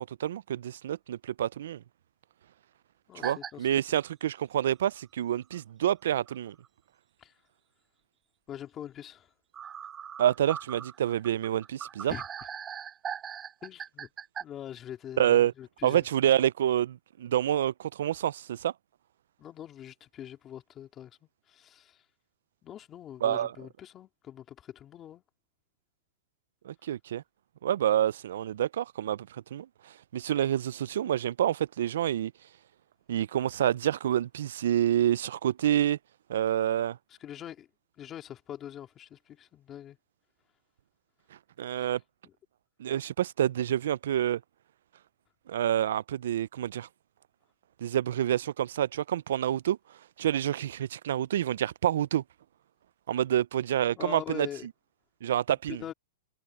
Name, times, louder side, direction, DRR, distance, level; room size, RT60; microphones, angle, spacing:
voice 1, 0.2-1.8 3.2-6.5 10.2-12.1 15.2-15.5 15.8-18.7 23.2-23.5 26.7-27.2 27.6-29.7 30.1-32.3 33.1-36.0 36.3-37.0 41.6-42.0 42.8-44.4 45.5-46.9 47.8-49.8 50.2-52.2 53.1-54.5 55.2-55.8, right 11 dB, 65° right, 0.4 m, -28 dB
voice 2, 3.1-3.8 7.2-7.3 8.5-9.3 12.1-12.2 13.6-14.1 14.4-16.0 19.4-21.1 21.5-22.0 22.6-25.2 37.2-37.7 38.0-40.0 41.8-41.9 42.2-42.3 54.0-54.7 55.5-55.9, left 10 dB, 20° left, 2.9 m, -43 dB
sound 1, 3.2-3.5 4.0-4.1 5.5-5.6 6.3-6.4 6.6-6.7 9.5-14.4, right 8 dB, 15° right, 2.4 m, -40 dB
hypercardioid pair, 160°, 0 cm